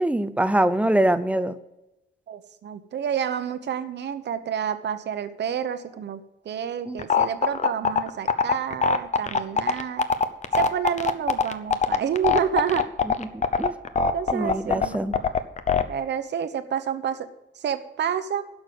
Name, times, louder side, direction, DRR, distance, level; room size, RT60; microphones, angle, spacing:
voice 1, 0.0-1.5 6.9-7.0 13.2-13.7 14.3-15.2, right 1 dB, 5° right, 12 dB, 0.5 m, -24 dB
voice 2, 2.3-10.1 10.6-12.9 14.0-15.1 15.9-17.3 17.6-18.4, right 8 dB, 65° right, 11 dB, 1.0 m, -29 dB
sound 1, 7.0-15.8, left 5 dB, 40° left, 0.7 m, -21 dB
11.5 x 6.3 x 8.0 m, 0.95 s
wide cardioid pair, 145°, 19 cm